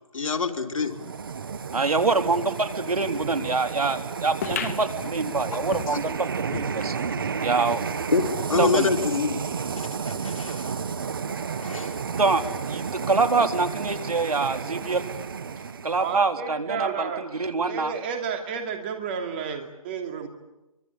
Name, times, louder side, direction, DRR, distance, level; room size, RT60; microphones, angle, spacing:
voice 1, 0.1-0.9 5.5-6.0 8.1-10.7 11.6-12.0, left 5 dB, 65° left, 4 dB, 3.7 m, -27 dB
sound 1, 0.8-16.2, right 6 dB, 40° right, 1.4 m, -32 dB
voice 2, 1.7-7.0 7.4-7.9 8.6-8.9 12.2-15.0 15.8-17.9, right 3 dB, 85° right, 6 dB, 3.8 m, -25 dB
sound 2, 4.4-7.4 7.8-7.9 8.1-8.2 9.0-9.1, left 7 dB, 25° left, 1.8 m, -36 dB
voice 3, 16.0-17.2 17.6-20.3, right 6 dB, 15° right, 4 dB, 2.8 m, -31 dB
27.0 x 25.0 x 8.6 m, 0.97 s
hypercardioid pair, 170°, 18 cm